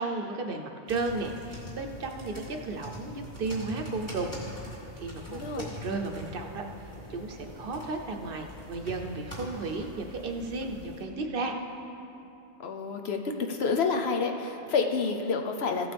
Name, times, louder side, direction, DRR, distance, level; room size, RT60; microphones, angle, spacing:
voice 1, 0.0-4.4 5.0-11.5, right 3 dB, 55° right, 4 dB, 0.9 m, -34 dB
sound 1, 0.9-11.0, left 1 dB, 25° left, 2.5 m, -43 dB
voice 2, 5.3-5.7 12.6-13.2 13.5-15.9, left 4 dB, 70° left, 4 dB, 1.0 m, -29 dB
15.0 x 8.6 x 3.4 m, 2.8 s
omnidirectional pair, 1.1 m